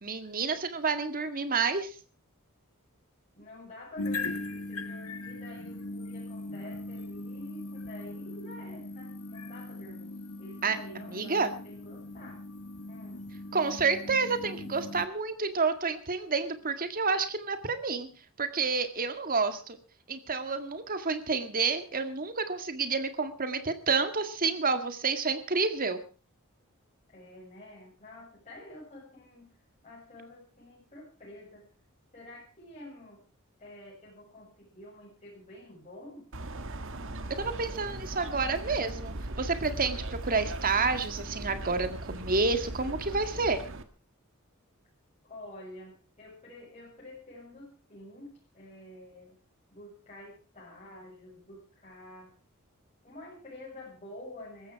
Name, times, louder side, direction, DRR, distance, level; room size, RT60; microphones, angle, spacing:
voice 1, 0.0-2.0 10.6-11.5 13.5-18.1 18.4-19.8 20.1-26.0 37.4-43.6, right 4 dB, 40° right, 9 dB, 1.9 m, -29 dB
voice 2, 3.3-10.1 10.4-11.4 11.6-12.4 12.9-13.3 27.1-29.6 29.8-31.7 32.1-33.2 33.6-36.3 45.2-49.3 49.7-52.3 53.0-54.7, left 1 dB, 30° left, -6 dB, 7.3 m, -48 dB
sound 1, 4.0-15.1, left 2 dB, 85° left, 1.4 m, -39 dB
sound 2, 36.3-43.8, right 1 dB, 60° right, 1.7 m, -38 dB
18.5 x 15.0 x 4.7 m, 0.36 s
head